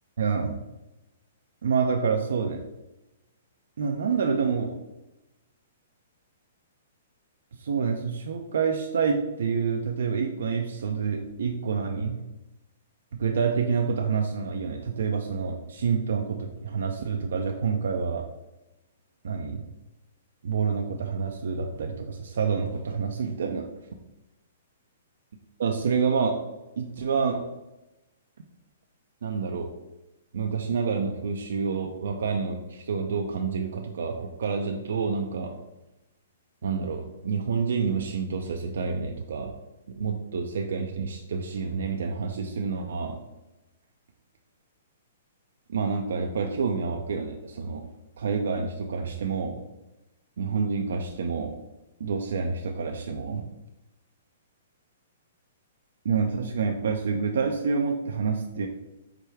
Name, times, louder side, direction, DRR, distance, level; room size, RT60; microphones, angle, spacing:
voice 1, 0.2-0.6 1.6-2.6 3.8-4.7 7.5-12.2 13.1-18.3 19.2-19.7 20.4-23.7 25.6-26.4 26.8-27.5 29.2-29.7 30.3-35.6 36.6-39.5 40.0-43.2 45.7-47.8 48.2-49.6 50.4-51.6 52.0-53.4 56.0-58.7, right 5 dB, 70° right, 3 dB, 0.4 m, -28 dB
4.8 x 2.2 x 4.5 m, 1.0 s
hypercardioid pair, 125°, 0 cm